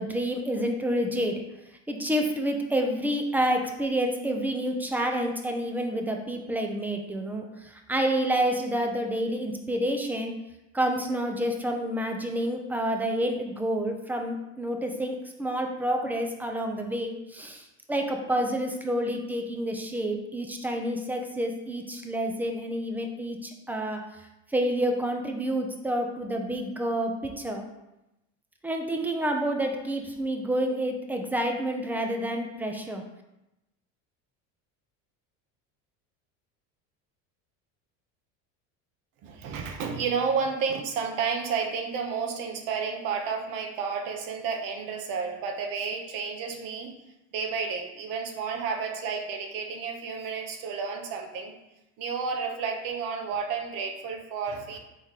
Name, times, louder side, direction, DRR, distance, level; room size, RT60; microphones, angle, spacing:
voice 1, 0.0-1.4 1.9-10.3 10.7-24.0 24.5-27.6 28.6-33.0, right 1 dB, 5° right, 3 dB, 0.4 m, -29 dB
voice 2, 39.2-46.9 47.3-51.6 52.0-54.8, right 5 dB, 60° right, 3 dB, 0.8 m, -31 dB
4.0 x 3.3 x 3.6 m, 0.93 s
supercardioid pair, 105°, 38 cm